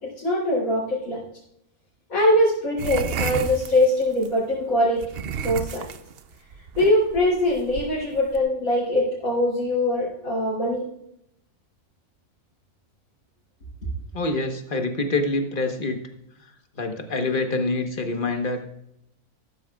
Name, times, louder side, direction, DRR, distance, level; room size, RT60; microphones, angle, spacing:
voice 1, 0.0-1.2 2.1-5.0 5.4-5.8 6.8-10.9, left 1 dB, 65° left, -10 dB, 3.8 m, -22 dB
sound 1, 2.8-4.3 5.0-8.4, right 6 dB, 60° right, 0.6 m, -32 dB
voice 2, 14.1-16.0 16.8-18.6, left 2 dB, 35° left, 5 dB, 1.3 m, -26 dB
13.5 x 13.0 x 2.4 m, 0.76 s
omnidirectional pair, 1.6 m